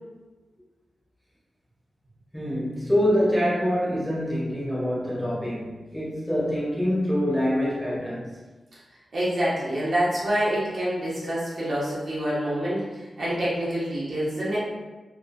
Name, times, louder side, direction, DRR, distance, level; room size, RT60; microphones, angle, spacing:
voice 1, 2.3-8.3, equal, 5° left, -8 dB, 0.8 m, -25 dB
voice 2, 9.1-14.6, equal, 55° right, -8 dB, 0.9 m, -26 dB
2.8 x 2.4 x 2.5 m, 1.2 s
wide cardioid pair, 150°, 0 cm